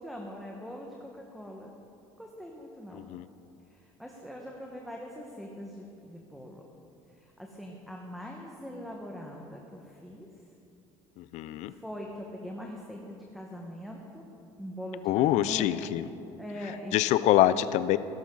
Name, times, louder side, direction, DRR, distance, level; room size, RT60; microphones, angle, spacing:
voice 1, 0.0-1.7 2.2-3.0 3.7-6.6 7.1-10.3 11.7-14.3 14.6-15.7 16.4-16.9, equal, ahead, -1 dB, 1.5 m, -42 dB
voice 2, 2.9-3.3 11.2-11.7 15.1-16.1 16.9-18.0, left 13 dB, 65° left, 15 dB, 0.5 m, -25 dB
17.0 x 11.0 x 4.0 m, 2.7 s
supercardioid pair, 85°, 13 cm